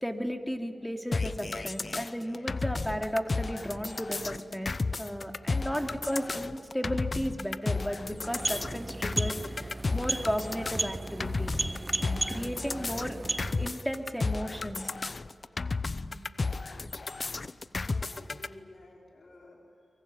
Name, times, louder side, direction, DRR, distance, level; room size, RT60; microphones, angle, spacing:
voice 1, 0.0-11.5 12.0-13.2 13.6-14.9, equal, 5° left, 5 dB, 2.9 m, -34 dB
sound 1, 1.1-18.5, left 3 dB, 50° left, 0.8 m, -33 dB
sound 2, 8.1-13.9, right 2 dB, 30° right, 0.7 m, -35 dB
voice 2, 15.7-16.4 17.3-19.9, left 2 dB, 70° left, -1 dB, 4.5 m, -54 dB
24.0 x 23.5 x 8.9 m, 2.7 s
cardioid pair, 40°, 0 cm